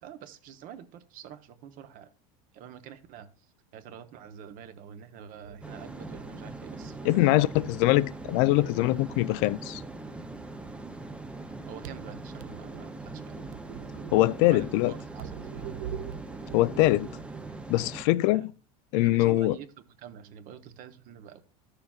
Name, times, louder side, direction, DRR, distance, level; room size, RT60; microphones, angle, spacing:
voice 1, 0.0-2.1 2.5-7.7 11.6-13.4 14.5-16.0 18.3-18.5 19.0-21.4, right 9 dB, 45° right, 1.0 m, -46 dB
sound 1, 5.3-7.8 8.1-9.3 11.7-17.5, right 9 dB, 70° right, 0.6 m, -45 dB
sound 2, 5.6-18.0, right 2 dB, 5° right, 0.5 m, -41 dB
voice 2, 7.0-9.8 14.1-14.9 16.5-17.1 17.7-18.5 18.9-19.6, left 17 dB, 60° left, 0.4 m, -23 dB
13.0 x 6.7 x 2.4 m
supercardioid pair, 135°, 19 cm